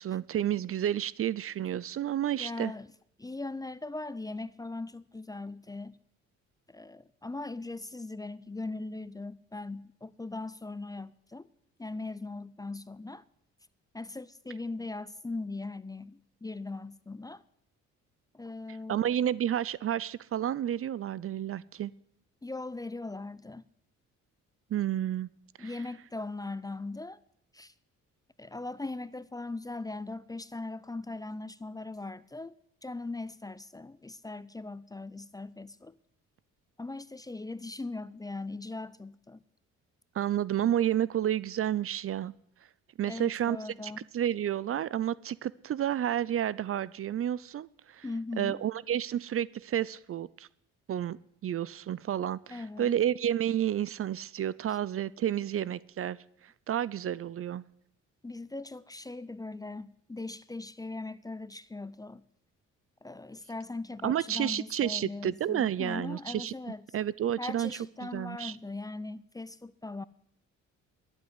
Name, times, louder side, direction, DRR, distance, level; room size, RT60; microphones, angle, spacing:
voice 1, 0.0-2.7 18.9-21.9 24.7-25.3 25.6-25.7 40.1-42.3 43.0-43.6 43.8-48.0 48.4-50.5 50.9-56.2 56.4-57.6 64.0-66.5 66.9-68.6, right 10 dB, 45° right, 0.5 m, -30 dB
voice 2, 2.3-2.9 3.2-6.0 6.7-11.5 11.8-13.2 13.9-17.4 18.3-19.2 22.4-23.6 25.6-27.2 27.5-27.7 28.4-32.6 32.8-36.0 36.8-39.4 43.0-44.0 48.0-48.6 52.5-53.0 54.7-54.8 58.2-62.3 63.0-66.8 67.4-70.0, left 2 dB, 10° left, 0.5 m, -39 dB
12.0 x 8.1 x 9.8 m
cardioid pair, 90°, 30 cm